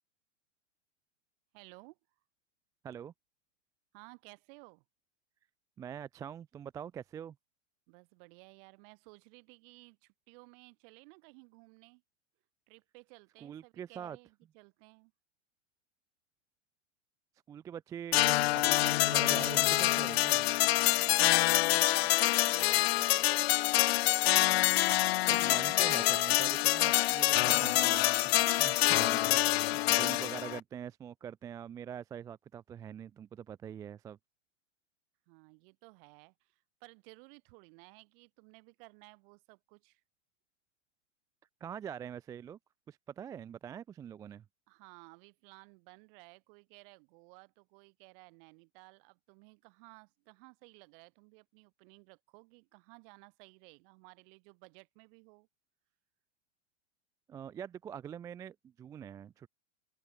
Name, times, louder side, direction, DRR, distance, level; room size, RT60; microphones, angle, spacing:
voice 1, 1.5-2.0 3.9-4.8 7.9-12.0 12.7-15.1 20.9-23.8 35.3-40.0 44.7-55.5, right 33 dB, 45° right, 6.6 m, -57 dB
voice 2, 5.8-7.4 13.4-14.2 17.5-20.5 25.3-28.3 28.6-34.2 41.6-42.6 42.9-44.4 57.3-59.5, right 8 dB, 10° right, 0.4 m, -44 dB
sound 1, 18.1-30.6, left 17 dB, 55° left, 0.5 m, -26 dB
open air
hypercardioid pair, 115°, 37 cm